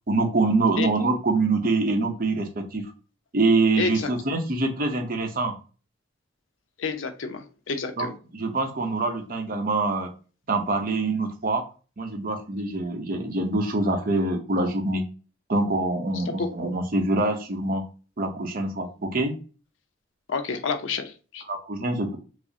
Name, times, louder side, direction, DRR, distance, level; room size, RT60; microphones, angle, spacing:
voice 1, 0.1-2.9 3.3-5.5 8.0-10.1 10.5-11.6 12.0-15.0 15.5-17.8 18.2-19.4 21.5-22.2, right 2 dB, 45° right, 4 dB, 0.7 m, -25 dB
voice 2, 3.8-4.1 6.8-8.1 16.4-16.5 20.3-21.4, left 4 dB, 80° left, 7 dB, 0.6 m, -29 dB
4.9 x 2.1 x 2.6 m, 0.36 s
head